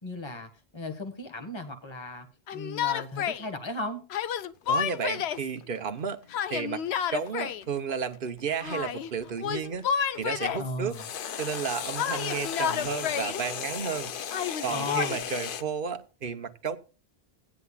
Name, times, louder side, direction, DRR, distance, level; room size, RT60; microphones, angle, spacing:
voice 1, 0.0-4.0 10.6-11.1 14.7-15.3, left 1 dB, 25° left, 1.3 m, -36 dB
Yell, 2.5-3.4 4.1-5.5 6.3-7.6 8.6-9.1 9.4-10.7 12.0-13.4 14.3-15.2, left 8 dB, 85° left, 0.9 m, -30 dB
sound 1, 4.6-9.8 10.9-15.6, left 8 dB, 60° left, 0.8 m, -37 dB
voice 2, 4.7-6.2 6.5-6.8 7.1-9.9 10.2-11.0 11.4-14.1 14.6-16.8, right 6 dB, 60° right, 1.0 m, -32 dB
17.0 x 9.8 x 2.3 m
omnidirectional pair, 1.1 m